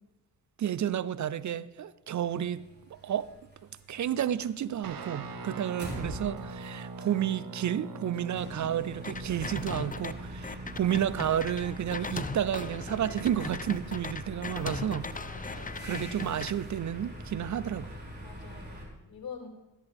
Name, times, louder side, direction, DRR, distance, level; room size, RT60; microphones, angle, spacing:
voice 1, 0.6-2.6 2.9-3.3 3.9-15.1 15.8-17.9, right 10 dB, 50° right, 0.5 m, -31 dB
sound 1, 2.3-18.9, equal, 25° right, 4.0 m, -44 dB
Guitar, 4.8-13.9, right 2 dB, 70° right, 1.2 m, -43 dB
sound 2, 9.0-10.1 10.4-16.5, left 4 dB, 20° left, 0.6 m, -39 dB
voice 2, 15.3-15.9 18.2-19.5, left 6 dB, 70° left, 2.7 m, -46 dB
13.5 x 11.0 x 3.5 m
cardioid pair, 60°, 37 cm